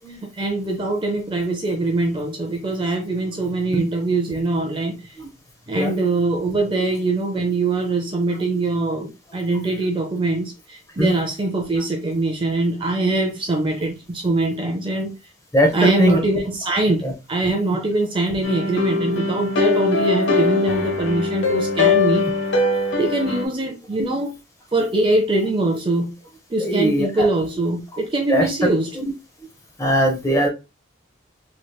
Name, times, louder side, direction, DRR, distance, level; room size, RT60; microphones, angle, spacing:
voice 1, 0.4-5.0 5.7-15.1 15.7-17.0 17.3-22.3 23.0-24.3 24.7-26.1 26.5-29.0, right 2 dB, 25° right, 0.4 m, -22 dB
sound 1, 18.4-23.5, left 3 dB, 75° left, 0.7 m, -21 dB
voice 2, 26.6-27.3 28.3-28.4 29.0-29.1 29.8-30.5, equal, 15° left, 0.7 m, -19 dB
3.2 x 3.0 x 2.2 m
head